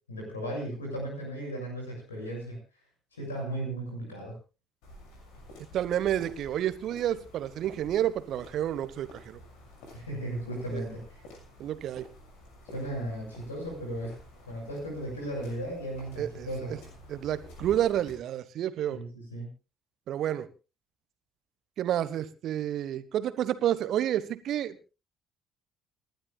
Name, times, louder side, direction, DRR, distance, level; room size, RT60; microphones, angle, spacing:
voice 1, 0.1-2.6 3.1-4.3 9.9-11.2 12.7-14.2 14.5-16.7 18.9-19.5, right 1 dB, 80° left, 1 dB, 6.8 m, -36 dB
sound 1, 4.8-18.1, left 1 dB, 65° left, 6.4 m, -50 dB
voice 2, 5.7-9.4 10.7-10.9 11.6-12.0 16.2-16.5 17.1-19.0 20.1-20.5 21.8-24.8, right 11 dB, 50° right, 14 dB, 1.3 m, -30 dB
29.0 x 12.0 x 2.4 m, 0.31 s
figure-of-eight pair, 50°, 0 cm